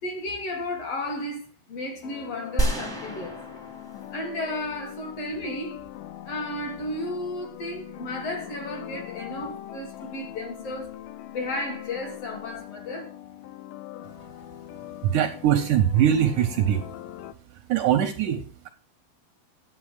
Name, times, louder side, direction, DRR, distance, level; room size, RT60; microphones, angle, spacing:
voice 1, 0.0-3.4 4.1-5.8 6.2-10.9 11.3-13.2, left 1 dB, 55° left, 1.9 m, -33 dB
sound 1, 2.0-17.3, left 13 dB, 85° left, 1.9 m, -42 dB
sound 2, 2.6-4.9, right 2 dB, 5° left, 0.5 m, -30 dB
voice 2, 15.0-16.9 17.7-18.7, right 10 dB, 80° right, 1.8 m, -22 dB
10.0 x 7.9 x 4.8 m
omnidirectional pair, 4.4 m